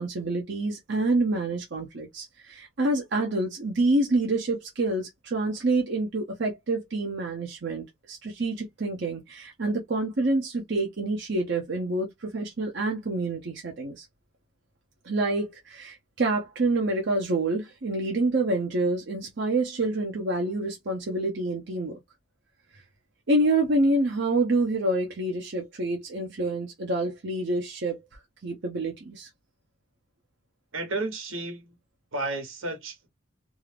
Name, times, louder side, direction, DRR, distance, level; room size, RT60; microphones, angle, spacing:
voice 1, 0.0-14.0 15.0-22.0 22.7-22.8 23.3-28.0 28.4-29.3, right 2 dB, 60° right, 0.7 m, -27 dB
voice 2, 30.7-31.8 32.1-33.1, right 2 dB, 85° right, 1.3 m, -32 dB
2.7 x 2.4 x 3.3 m
head